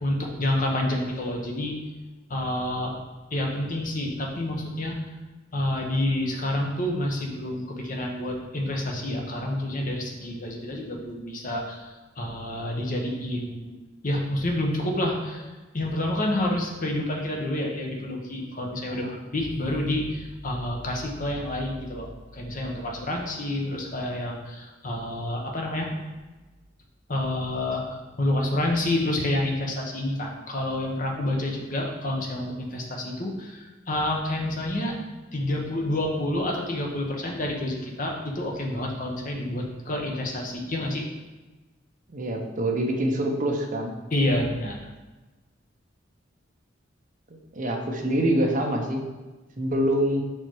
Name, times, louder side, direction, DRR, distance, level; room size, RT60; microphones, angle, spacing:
voice 1, 0.0-1.7 2.3-2.9 3.3-5.0 5.5-13.7 14.0-15.5 15.7-19.0 19.3-25.9 27.1-35.0 35.3-41.0 44.1-44.8, left 1 dB, 45° left, 0 dB, 1.0 m, -28 dB
voice 2, 42.1-43.9 47.5-49.1 49.6-50.2, right 1 dB, 40° right, 1 dB, 0.9 m, -25 dB
5.5 x 4.5 x 4.6 m, 1.2 s
head